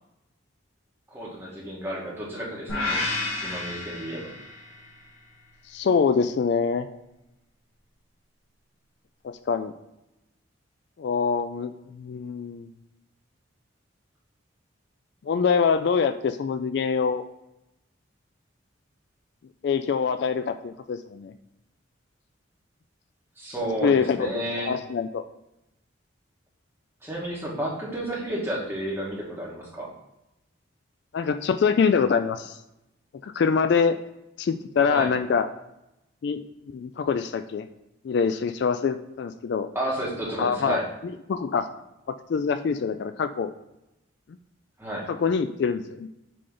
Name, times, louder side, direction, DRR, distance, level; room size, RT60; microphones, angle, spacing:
voice 1, 1.1-3.0 3.4-4.3 23.4-24.7 27.0-29.9 34.9-35.1 39.7-40.9 44.8-45.1, right 1 dB, 10° right, -5 dB, 1.7 m, -31 dB
sound 1, 2.7-4.9, left 2 dB, 90° left, 1.9 m, -30 dB
voice 2, 5.7-6.9 9.2-9.7 11.0-12.7 15.2-17.2 19.6-21.3 23.8-24.3 24.6-25.2 31.1-32.6 33.2-34.0 34.4-35.5 36.2-36.4 36.7-37.7 38.0-39.7 40.4-40.8 41.3-41.7 42.1-43.5 45.1-46.1, left 6 dB, 55° left, 10 dB, 0.3 m, -24 dB
7.6 x 3.3 x 3.8 m, 0.89 s
head